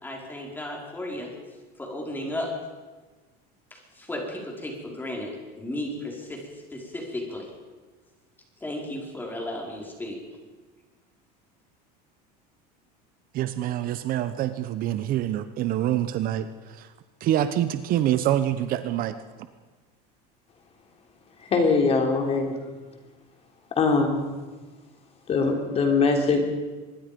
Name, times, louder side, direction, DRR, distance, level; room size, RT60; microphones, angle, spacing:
voice 1, 0.0-1.3 1.8-2.6 3.7-7.5 8.6-10.2, left 1 dB, 10° left, 0 dB, 5.0 m, -34 dB
voice 2, 13.3-16.5 16.8-16.9 17.2-19.1, right 12 dB, 45° right, 11 dB, 1.0 m, -25 dB
voice 3, 21.5-22.5 23.7-24.2 25.3-26.4, left 4 dB, 30° left, 3 dB, 3.6 m, -22 dB
25.0 x 22.0 x 5.3 m, 1.3 s
cardioid pair, 145°, 21 cm